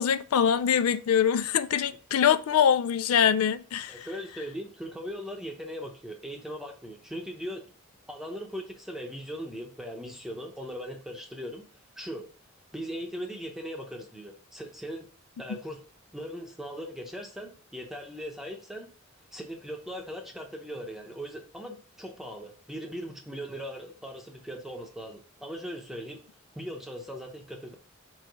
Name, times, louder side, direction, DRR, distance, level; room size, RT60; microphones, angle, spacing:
voice 1, 0.0-4.1, left 8 dB, 85° left, 0.4 m, -24 dB
voice 2, 3.9-7.6 8.1-11.6 12.0-12.3 12.7-15.1 15.4-15.8 16.1-18.9 19.3-26.2 26.5-27.7, equal, ahead, 0.8 m, -39 dB
4.7 x 4.3 x 5.2 m
head